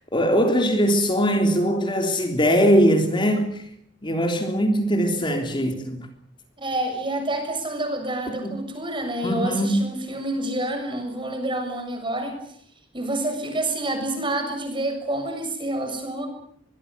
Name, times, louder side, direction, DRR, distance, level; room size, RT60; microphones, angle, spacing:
voice 1, 0.1-3.7 4.0-6.1 8.4-8.5 9.2-9.8, equal, 25° left, 3.5 m, -21 dB
voice 2, 6.6-12.4 12.9-16.3, right 1 dB, 25° right, 6.9 m, -28 dB
24.0 x 23.0 x 6.9 m
head